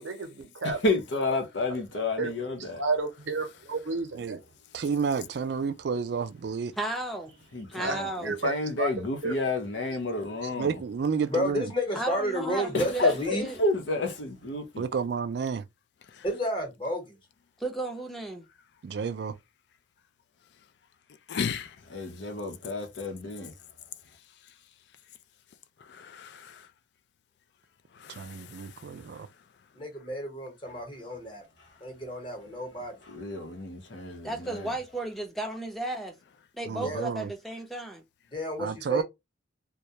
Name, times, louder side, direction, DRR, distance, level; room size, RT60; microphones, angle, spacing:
voice 1, 0.0-0.8 1.2-1.3 1.7-1.8 2.2-4.4 7.8-8.5 8.8-8.9 9.2-9.3 10.4-10.5, right 3 dB, 90° right, 0.7 m, -32 dB
voice 2, 0.6-2.8 7.5-10.7 12.7-14.8 21.9-23.5 33.1-34.7, left 2 dB, 80° left, 0.8 m, -30 dB
voice 3, 4.7-6.7 10.5-11.7 14.8-15.6 18.8-19.3 28.1-29.3 36.7-37.3 38.6-39.0, right 6 dB, 60° right, 0.3 m, -31 dB
voice 4, 6.8-7.4 7.7-8.3 11.9-13.6 17.6-18.4 34.2-36.2 36.5-38.0, right 2 dB, ahead, 0.5 m, -34 dB
voice 5, 11.3-13.5 16.2-17.2 29.7-31.4 31.8-32.9 36.8-37.0 38.3-39.0, equal, 25° left, 0.9 m, -31 dB
voice 6, 21.3-21.8 25.8-26.7 27.9-29.2, left 6 dB, 65° left, 0.3 m, -37 dB
2.3 x 2.1 x 2.7 m
head